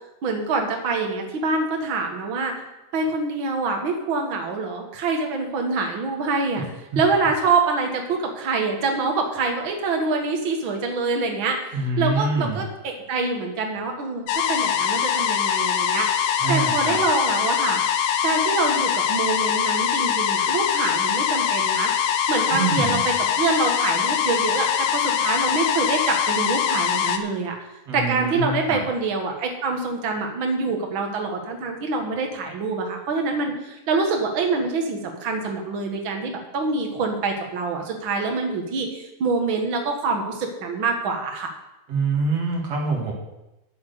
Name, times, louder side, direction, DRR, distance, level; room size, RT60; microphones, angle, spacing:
voice 1, 0.2-2.5 2.9-6.6 6.9-11.6 12.0-16.1 16.5-17.8 18.2-21.9 22.3-27.6 27.9-41.5, right 4 dB, 70° right, 2 dB, 1.1 m, -25 dB
voice 2, 11.7-12.6 16.4-17.0 22.5-23.0 27.9-28.8 41.9-43.1, right 3 dB, 50° right, 0 dB, 2.4 m, -25 dB
sound 1, 14.3-27.2, left 9 dB, 90° left, 2.8 m, -23 dB
9.8 x 7.9 x 6.9 m, 0.95 s
omnidirectional pair, 4.7 m